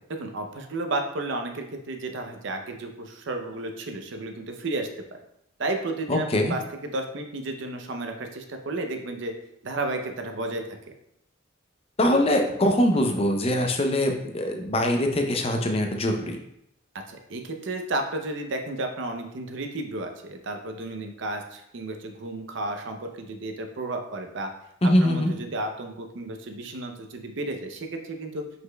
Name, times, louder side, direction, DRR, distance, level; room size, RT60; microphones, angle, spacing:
voice 1, 0.2-4.9 5.6-9.3 9.6-10.8 17.1-24.5 25.0-28.6, right 2 dB, 65° right, 5 dB, 0.6 m, -32 dB
voice 2, 6.1-6.5 12.0-16.4 24.8-25.3, left 1 dB, 30° left, 4 dB, 0.5 m, -23 dB
5.3 x 4.0 x 2.2 m, 0.77 s
head